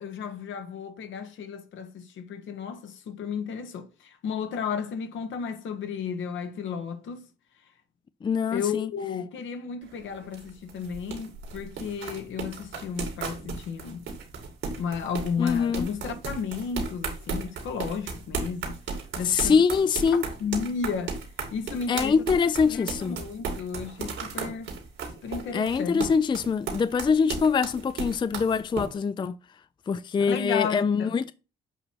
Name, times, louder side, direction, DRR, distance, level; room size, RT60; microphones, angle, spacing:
voice 1, 0.0-7.2 8.5-14.1 14.8-18.8 19.2-19.6 20.4-21.2 21.5-22.2 22.7-24.7 25.2-26.0 30.2-31.1, left 6 dB, 75° left, 1.2 m, -33 dB
voice 2, 8.2-8.9 15.4-15.9 19.2-20.2 21.9-23.2 25.5-29.4 29.9-31.3, left 6 dB, 25° left, 0.4 m, -24 dB
sound 1, 9.8-28.9, right 5 dB, 80° right, 2.4 m, -35 dB
7.9 x 2.9 x 6.0 m
cardioid pair, 90°, 20 cm